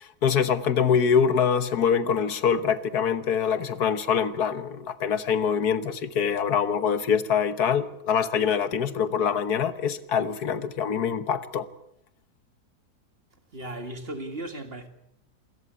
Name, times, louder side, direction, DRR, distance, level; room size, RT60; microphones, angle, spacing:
voice 1, 0.0-11.7, left 7 dB, 70° left, 1.6 m, -24 dB
voice 2, 13.5-14.9, right 1 dB, 35° right, 2.2 m, -36 dB
27.5 x 14.0 x 9.4 m
omnidirectional pair, 1.7 m